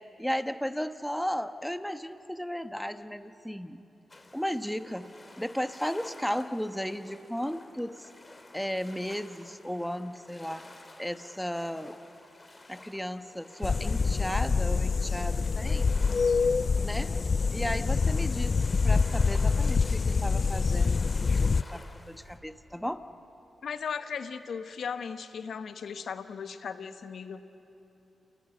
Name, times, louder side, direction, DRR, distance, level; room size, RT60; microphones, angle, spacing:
voice 1, 0.2-3.8 4.3-5.1 5.4-8.1 8.5-10.7 11.0-12.0 12.7-16.0 16.8-17.1 17.5-23.0, equal, 5° left, 9 dB, 1.2 m, -35 dB
sound 1, 4.1-22.4, left 2 dB, 30° left, 3.1 m, -52 dB
sound 2, 13.6-21.6, left 4 dB, 50° left, 0.4 m, -26 dB
voice 2, 23.6-27.4, left 6 dB, 70° left, 9 dB, 1.1 m, -37 dB
28.5 x 17.5 x 7.8 m, 3.0 s
supercardioid pair, 45°, 0 cm